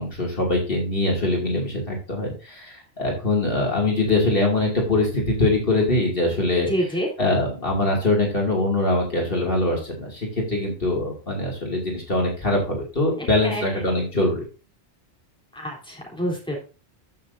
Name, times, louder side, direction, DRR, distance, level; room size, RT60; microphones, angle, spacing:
voice 1, 0.0-14.5, left 2 dB, 50° left, -1 dB, 2.7 m, -23 dB
voice 2, 6.7-7.1 13.2-13.6 15.5-16.6, equal, 5° left, -2 dB, 3.5 m, -27 dB
14.0 x 6.2 x 2.7 m, 0.33 s
omnidirectional pair, 1.2 m